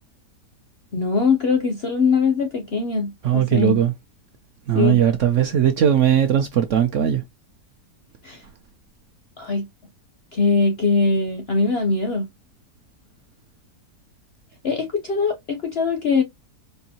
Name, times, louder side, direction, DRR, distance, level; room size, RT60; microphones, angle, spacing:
voice 1, 0.9-3.8 4.7-5.0 8.2-8.4 9.4-9.7 10.3-12.3 14.6-16.2, left 4 dB, 60° left, 0.6 m, -21 dB
voice 2, 3.2-3.9 4.7-7.2, right 10 dB, 65° right, 0.7 m, -19 dB
4.5 x 2.6 x 2.8 m
omnidirectional pair, 1.8 m